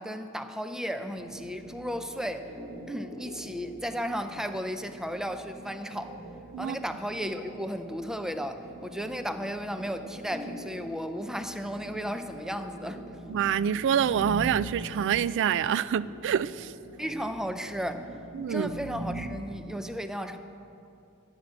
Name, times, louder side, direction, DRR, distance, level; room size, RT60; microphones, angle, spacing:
voice 1, 0.0-2.5 2.9-6.2 6.6-13.0 17.0-18.1 18.5-20.4, equal, ahead, 8 dB, 0.5 m, -34 dB
sound 1, 1.0-19.4, right 1 dB, 20° right, 2.5 m, -43 dB
voice 2, 13.3-16.7 18.3-18.7, right 8 dB, 55° right, 18 dB, 0.3 m, -26 dB
14.0 x 6.3 x 8.5 m, 2.7 s
head